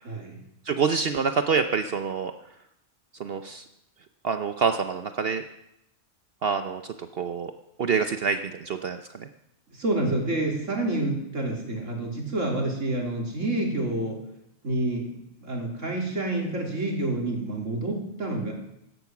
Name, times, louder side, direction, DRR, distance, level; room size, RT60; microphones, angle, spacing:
voice 1, 0.0-0.4 9.7-14.2 14.6-15.1 15.4-18.5, right 2 dB, 80° right, 0 dB, 3.5 m, -28 dB
voice 2, 0.7-2.3 3.2-3.6 4.2-5.4 6.4-7.5 7.8-9.3, right 5 dB, 55° right, 8 dB, 0.9 m, -26 dB
16.5 x 12.5 x 6.0 m, 0.80 s
omnidirectional pair, 1.3 m